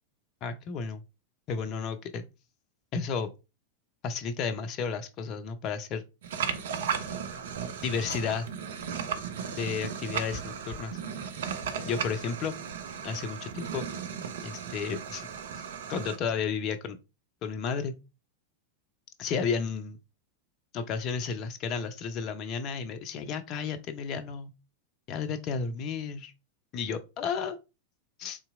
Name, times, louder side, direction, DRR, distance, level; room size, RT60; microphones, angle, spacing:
voice 1, 0.4-1.0 1.5-2.3 2.9-3.3 4.0-6.0 7.8-8.5 9.6-11.0 11.8-12.6 13.0-13.9 14.4-15.3 15.6-15.7 15.9-17.0 17.4-17.9 19.2-20.0 20.7-24.5 25.1-26.3 26.7-27.6 28.2-28.4, left 6 dB, 35° left, 0.4 m, -32 dB
sound 1, 6.2-16.2, right 7 dB, 60° right, 0.5 m, -36 dB
sound 2, 6.9-8.5 9.4-9.5 10.0-11.8, left 1 dB, 80° left, 0.6 m, -48 dB
3.8 x 2.8 x 2.3 m
figure-of-eight pair, 90°, 0 cm